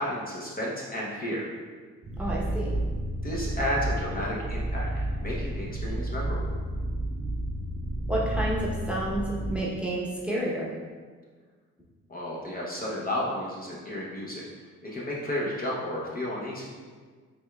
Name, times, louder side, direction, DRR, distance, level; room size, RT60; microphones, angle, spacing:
voice 1, 0.0-1.5 2.2-2.3 3.2-6.6 12.1-14.4 14.8-16.7, left 1 dB, 30° left, -5 dB, 0.9 m, -32 dB
sound 1, 2.0-9.6, right 1 dB, 20° right, 0.5 m, -31 dB
voice 2, 2.2-2.7 8.1-10.7, right 1 dB, 5° right, -6 dB, 1.0 m, -30 dB
5.1 x 3.4 x 2.4 m, 1.5 s
cardioid pair, 90°, 30 cm